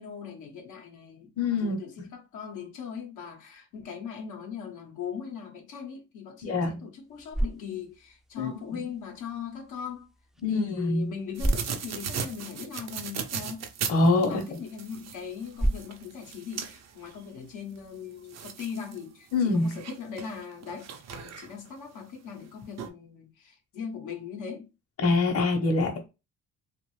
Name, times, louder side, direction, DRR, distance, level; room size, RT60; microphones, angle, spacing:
voice 1, 0.0-1.3 1.6-10.1 10.5-13.7 14.2-24.7, left 7 dB, 80° left, 0.8 m, -40 dB
voice 2, 1.4-1.8 6.4-6.8 8.4-8.9 10.4-11.1 13.9-14.6 19.3-19.7 25.0-26.1, left 3 dB, 50° left, 0.9 m, -25 dB
sound 1, 6.9-18.0, right 1 dB, ahead, 0.4 m, -36 dB
sound 2, 11.3-17.2 17.8-17.9 18.3-19.0 19.3-21.7 22.4-22.5 22.8-22.9, right 7 dB, 60° right, 0.6 m, -37 dB
2.6 x 2.5 x 3.1 m
cardioid pair, 90°, 30 cm